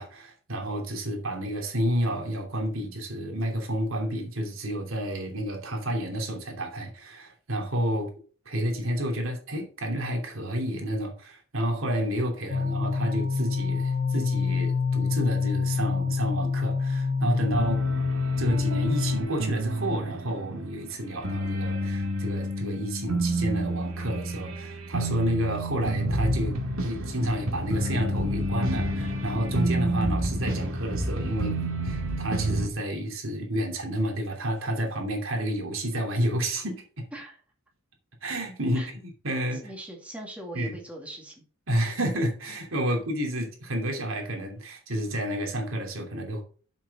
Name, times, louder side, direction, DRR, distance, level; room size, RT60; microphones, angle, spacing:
voice 1, 0.0-8.1 8.4-17.8 18.4-31.5 31.8-37.0 38.2-39.7 40.5-40.8 41.7-46.4, equal, 75° right, 2.9 m, -30 dB
sound 1, 12.5-19.2, left 4 dB, 55° left, 1.0 m, -26 dB
sound 2, 17.5-20.9 21.1-32.7, right 1 dB, 90° right, 2.1 m, -29 dB
voice 2, 39.6-41.4, right 1 dB, 5° right, 2.1 m, -40 dB
7.3 x 6.2 x 5.4 m
head